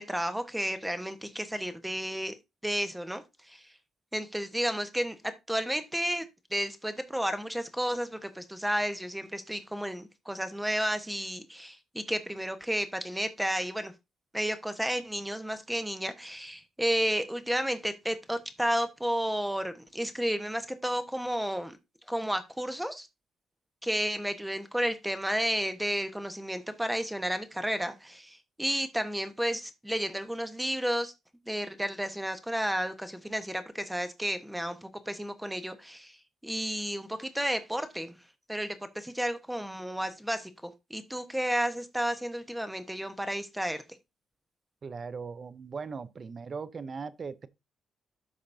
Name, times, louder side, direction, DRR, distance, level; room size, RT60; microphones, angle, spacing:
voice 1, 0.0-2.3 2.6-3.7 4.1-13.9 14.3-21.8 22.1-23.1 23.8-31.1 31.5-36.2 36.4-38.2 38.5-43.8, equal, 5° right, 1.1 m, -32 dB
voice 2, 44.8-47.5, right 5 dB, 40° right, 0.6 m, -39 dB
12.5 x 5.1 x 2.7 m
cardioid pair, 90°, 0 cm